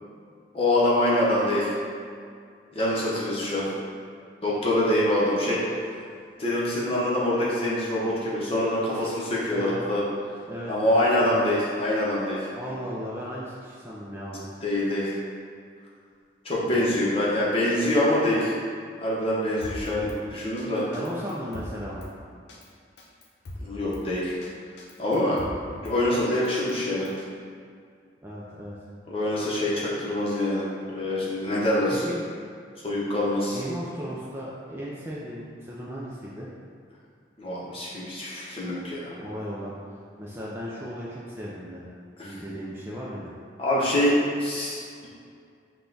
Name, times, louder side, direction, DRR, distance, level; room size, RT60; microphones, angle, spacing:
voice 1, 0.5-1.7 2.7-3.6 4.4-5.6 6.4-10.0 10.7-12.5 14.6-15.1 16.4-18.5 19.0-20.8 23.6-24.3 25.0-27.1 29.1-30.6 30.9-32.0 32.8-33.6 37.4-39.1 42.2-42.3 43.6-45.1, left 1 dB, 30° left, -7 dB, 0.9 m, -25 dB
voice 2, 10.5-11.3 12.5-14.5 16.6-17.0 19.9-20.3 20.8-22.1 28.2-28.8 32.0-32.2 33.5-36.5 39.2-39.7 40.2-41.8 42.2-43.3, equal, 15° right, -7 dB, 0.4 m, -36 dB
Drum kit, 19.6-20.2 20.6-20.7 20.9-22.1 22.5-22.7 23.0-24.0 24.4-24.5 24.8-25.9 26.3-27.3, left 1 dB, 65° left, 0.6 m, -40 dB
5.3 x 2.3 x 3.9 m, 2.2 s
head